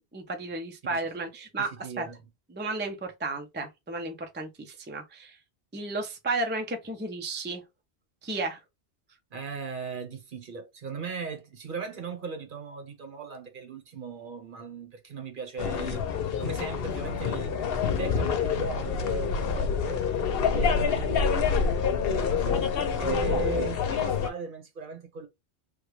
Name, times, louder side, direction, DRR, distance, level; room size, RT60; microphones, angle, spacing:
voice 1, 0.1-2.1 2.5-5.4 5.7-7.6 8.2-8.6, right 2 dB, 15° right, 0.4 m, -33 dB
voice 2, 1.6-2.2 9.3-16.1 16.4-17.5 17.8-20.1 20.5-21.7 22.0-25.3, right 4 dB, 50° right, 0.9 m, -37 dB
sound 1, 15.6-24.3, left 6 dB, 60° left, 0.8 m, -27 dB
3.3 x 2.2 x 3.1 m
omnidirectional pair, 1.1 m